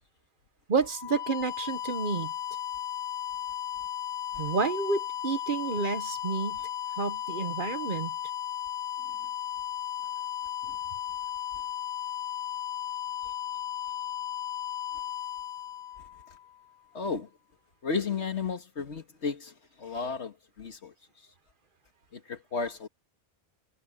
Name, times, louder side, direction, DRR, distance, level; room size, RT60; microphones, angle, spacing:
voice 1, 0.7-2.3 4.4-6.6 7.0-8.1, right 4 dB, 50° right, 1.1 m, -30 dB
sound 1, 0.8-16.6, left 11 dB, 50° left, 0.7 m, -35 dB
voice 2, 16.9-17.3 17.8-20.9 22.1-22.9, left 5 dB, 75° left, 2.0 m, -34 dB
omnidirectional pair, 1.2 m